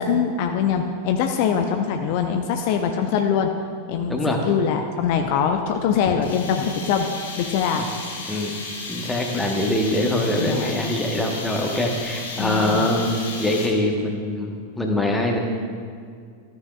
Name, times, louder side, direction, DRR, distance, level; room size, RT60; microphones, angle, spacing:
voice 1, 0.0-3.5 3.9-7.1 7.4-7.9 10.3-10.8 12.4-12.9, left 7 dB, 50° left, 5 dB, 0.5 m, -23 dB
voice 2, 4.1-4.4 7.7-7.9 8.3-8.6 8.9-13.1 13.4-15.4, left 1 dB, 5° left, 1 dB, 1.2 m, -23 dB
sound 1, 6.2-13.9, left 3 dB, 65° left, 1.7 m, -34 dB
13.5 x 9.1 x 2.4 m, 2.1 s
figure-of-eight pair, 90°, 0 cm